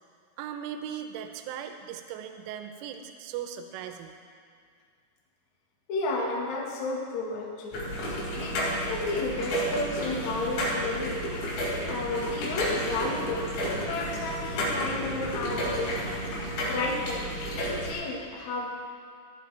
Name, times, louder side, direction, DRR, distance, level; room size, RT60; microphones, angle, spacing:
voice 1, 0.4-4.1, right 9 dB, 85° right, 6 dB, 3.2 m, -38 dB
voice 2, 5.9-7.8 8.4-11.2 11.9-13.5 13.7-15.9 16.7-18.7, left 3 dB, 65° left, -1 dB, 1.8 m, -32 dB
sound 1, 7.7-17.9, equal, 85° left, 5.8 m, -31 dB
16.5 x 11.5 x 3.3 m, 2.2 s
omnidirectional pair, 5.7 m